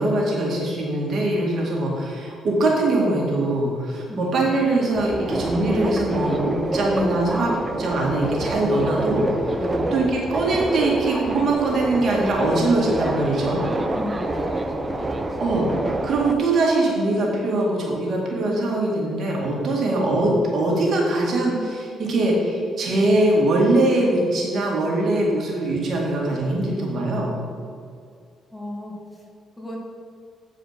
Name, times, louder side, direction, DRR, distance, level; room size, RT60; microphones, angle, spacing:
voice 1, 0.0-7.5 7.8-9.6 9.9-13.6 15.4-27.4, right 2 dB, 60° right, -2 dB, 2.1 m, -22 dB
voice 2, 4.1-4.4 9.6-10.0 13.9-14.9 19.7-19.9 28.5-29.2 29.6-29.8, left 1 dB, 5° left, -3 dB, 2.0 m, -35 dB
Subway metro underground, 5.0-16.3, right 1 dB, 20° right, 0.8 m, -27 dB
9.2 x 4.9 x 5.8 m, 2.3 s
cardioid pair, 90°, 0 cm